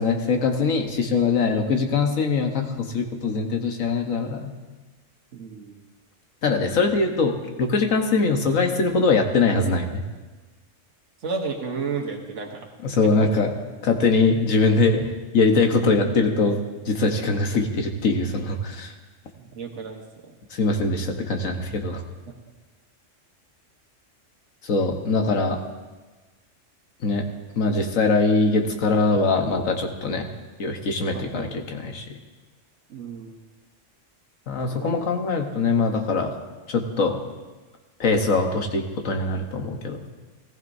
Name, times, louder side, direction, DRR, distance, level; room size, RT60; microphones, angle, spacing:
voice 1, 0.0-4.5 6.4-10.0 12.8-13.5 13.8-16.6 16.8-18.9 20.5-22.0 24.6-25.6 27.0-27.3 27.6-30.3 30.6-32.0 34.5-36.3 36.7-37.2 38.0-40.0, left 3 dB, 85° left, 4 dB, 1.6 m, -22 dB
voice 2, 5.3-5.8 11.2-12.7 13.2-13.3 19.4-20.3 31.1-31.6 32.9-33.4 34.7-34.9, right 5 dB, 70° right, 0 dB, 1.6 m, -32 dB
19.0 x 14.5 x 2.7 m, 1.3 s
omnidirectional pair, 1.3 m